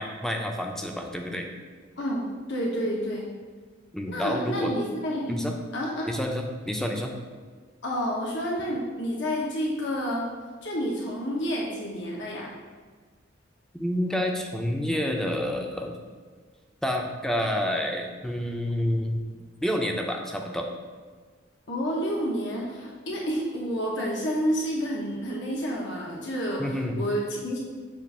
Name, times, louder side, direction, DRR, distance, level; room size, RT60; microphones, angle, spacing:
voice 1, 0.0-1.5 3.9-4.8 5.3-5.5 6.0-7.1 13.8-16.0 16.8-19.2 19.6-20.7 26.6-27.0, equal, 5° left, 2 dB, 0.5 m, -29 dB
voice 2, 2.0-3.2 4.1-6.1 7.8-10.3 10.6-12.5 21.7-27.6, equal, 65° left, -2 dB, 0.9 m, -29 dB
7.4 x 2.5 x 5.4 m, 1.5 s
head